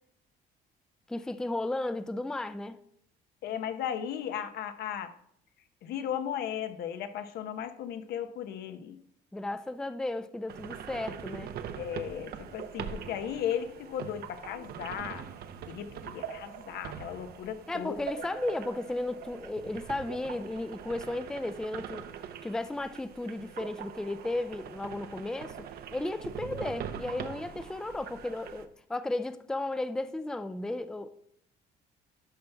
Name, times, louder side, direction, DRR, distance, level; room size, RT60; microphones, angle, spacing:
voice 1, 1.1-2.8 9.3-11.5 17.7-22.0 22.4-25.6 25.9-31.1, left 2 dB, 5° left, 0.4 m, -34 dB
voice 2, 3.4-5.1 5.8-9.0 11.7-15.3 15.7-18.3, left 9 dB, 75° left, 0.9 m, -36 dB
sound 1, 10.5-28.6, right 8 dB, 65° right, 0.7 m, -43 dB
11.5 x 5.6 x 3.4 m
cardioid pair, 110°, 17 cm